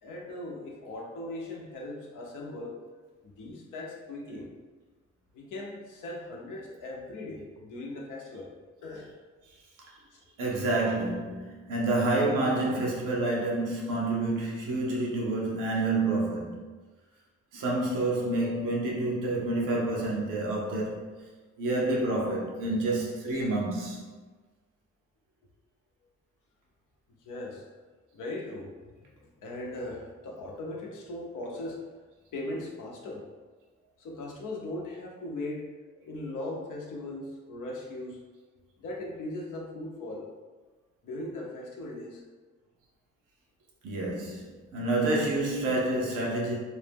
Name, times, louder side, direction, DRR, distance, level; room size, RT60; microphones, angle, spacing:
voice 1, 0.0-2.8 3.2-4.5 5.3-8.5 8.8-9.1 10.1-10.2 27.2-27.6 28.1-31.8 32.3-33.2 34.0-35.7 36.0-38.2 38.8-40.3 41.0-42.2, left 2 dB, 80° left, -1 dB, 0.6 m, -39 dB
voice 2, 10.4-16.6 17.5-21.1 21.6-24.0 43.8-46.5, right 2 dB, 85° right, -3 dB, 0.7 m, -28 dB
2.5 x 2.0 x 3.4 m, 1.3 s
supercardioid pair, 45°, 31 cm